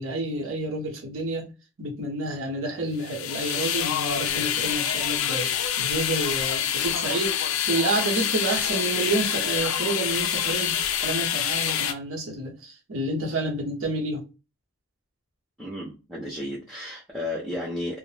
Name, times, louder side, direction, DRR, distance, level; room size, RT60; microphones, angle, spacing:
voice 1, 0.0-1.5 1.8-5.5 5.8-14.2, right 2 dB, 80° right, 0.9 m, -29 dB
sound 1, 3.0-11.9, left 9 dB, 90° left, 0.4 m, -26 dB
voice 2, 15.6-18.0, left 1 dB, ahead, 0.5 m, -33 dB
2.0 x 2.0 x 3.2 m
head